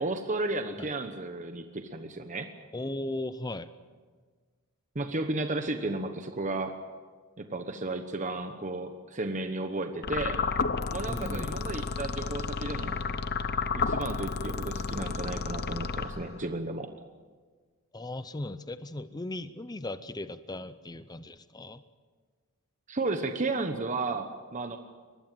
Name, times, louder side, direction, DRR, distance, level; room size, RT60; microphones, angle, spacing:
voice 1, 0.0-2.5 4.9-6.7 7.4-10.4 10.9-13.0 13.7-16.9 22.9-24.8, right 2 dB, 35° right, 7 dB, 1.1 m, -33 dB
voice 2, 2.7-3.7 11.1-11.6 17.9-21.8, left 1 dB, 20° left, 12 dB, 0.6 m, -37 dB
sound 1, 10.0-16.5, left 4 dB, 50° left, 0.8 m, -32 dB
23.0 x 20.0 x 7.6 m, 1.5 s
head